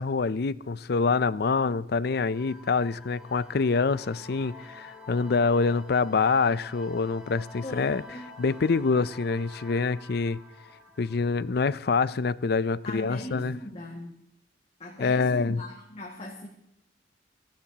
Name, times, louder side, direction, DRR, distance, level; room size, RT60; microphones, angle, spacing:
voice 1, 0.0-8.0 8.4-10.4 11.0-13.6 15.0-15.6, left 4 dB, 65° left, 0.5 m, -26 dB
sound 1, 2.1-12.5, left 2 dB, 5° right, 3.8 m, -49 dB
voice 2, 7.6-8.3 12.8-14.1 14.8-16.5, left 1 dB, 35° left, 1.9 m, -39 dB
28.5 x 12.0 x 2.9 m
head